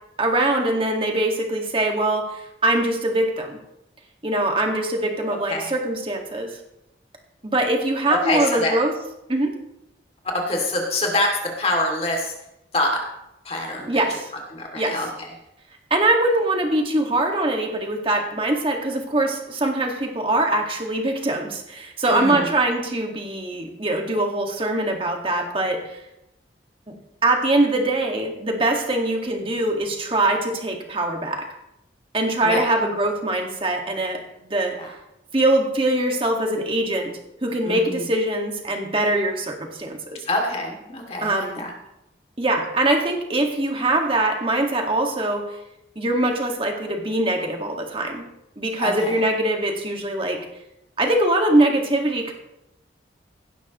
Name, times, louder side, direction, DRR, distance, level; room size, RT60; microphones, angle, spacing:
voice 1, 0.2-3.6 4.2-6.6 7.4-8.9 9.3-9.5 13.9-14.3 14.7-14.9 15.9-26.0 27.2-31.5 32.1-34.8 35.3-37.1 37.4-40.2 41.2-41.6 42.4-45.6 46.0-48.2 48.6-50.5 51.0-52.3, right 1 dB, 30° right, 2 dB, 1.8 m, -22 dB
voice 2, 8.1-8.8 10.3-12.3 12.7-13.1 13.4-14.0 14.5-15.3 22.1-22.5 32.4-32.7 34.8-34.9 37.6-38.1 40.3-41.7 48.8-49.2, left 1 dB, 35° left, 1 dB, 2.6 m, -25 dB
16.5 x 12.5 x 3.1 m, 0.86 s
head